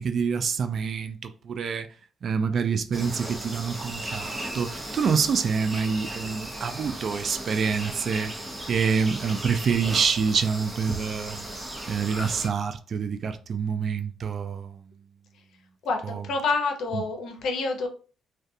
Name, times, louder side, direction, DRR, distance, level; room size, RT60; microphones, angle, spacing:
voice 1, 0.0-1.9 2.2-8.3 8.7-11.4 11.9-14.8 16.0-16.2 16.9-17.0, right 6 dB, 55° right, 0.3 m, -27 dB
sound 1, 2.9-12.5, right 1 dB, 15° right, 0.8 m, -36 dB
voice 2, 15.8-17.9, left 3 dB, 70° left, 0.7 m, -28 dB
2.4 x 2.3 x 2.6 m
cardioid pair, 90°, 0 cm